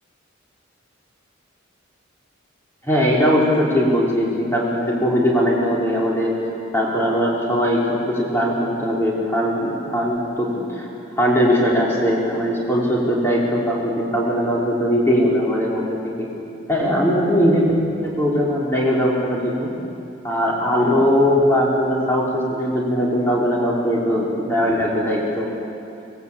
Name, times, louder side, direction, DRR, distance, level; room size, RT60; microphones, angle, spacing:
voice 1, 2.8-6.3 6.7-10.9 11.2-16.3 16.7-17.7 18.0-19.7 20.2-25.5, equal, 10° left, -5 dB, 4.3 m, -20 dB
27.0 x 18.0 x 8.5 m, 2.6 s
head